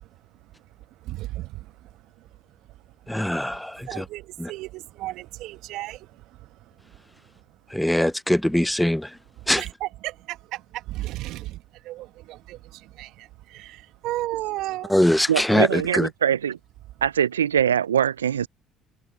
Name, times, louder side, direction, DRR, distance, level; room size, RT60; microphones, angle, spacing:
voice 1, 1.0-2.3 3.8-7.0 9.4-14.9, right 17 dB, 65° right, 1.5 m, -35 dB
voice 2, 3.1-4.0 4.4-4.5 7.7-9.1 9.5-9.6 14.9-16.1, left 1 dB, 5° left, 0.5 m, -22 dB
voice 3, 15.3-16.6 17.0-18.5, right 9 dB, 90° right, 0.4 m, -22 dB
hypercardioid pair, 60°, 0 cm